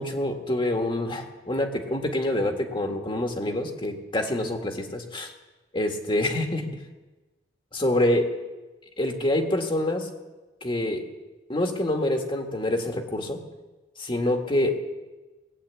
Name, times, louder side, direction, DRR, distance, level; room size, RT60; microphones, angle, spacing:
voice 1, 0.0-5.3 5.7-6.7 7.7-8.3 9.0-10.1 10.6-11.1 11.5-13.4 14.0-14.8, left 1 dB, 30° left, 3 dB, 1.8 m, -26 dB
19.0 x 8.6 x 8.3 m, 1.2 s
head